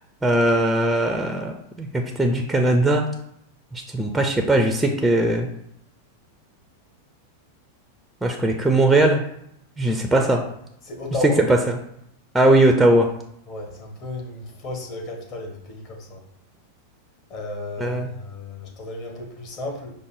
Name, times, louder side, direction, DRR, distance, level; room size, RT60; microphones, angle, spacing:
voice 1, 0.2-3.1 3.7-5.5 8.2-9.2 9.8-10.4 11.5-11.6 12.3-13.1 17.8-18.1, right 1 dB, 5° right, 4 dB, 0.4 m, -19 dB
voice 2, 10.8-11.4 13.5-16.2 17.3-19.9, left 2 dB, 40° left, 1 dB, 1.2 m, -33 dB
5.2 x 2.0 x 4.8 m, 0.75 s
figure-of-eight pair, 90°, 0 cm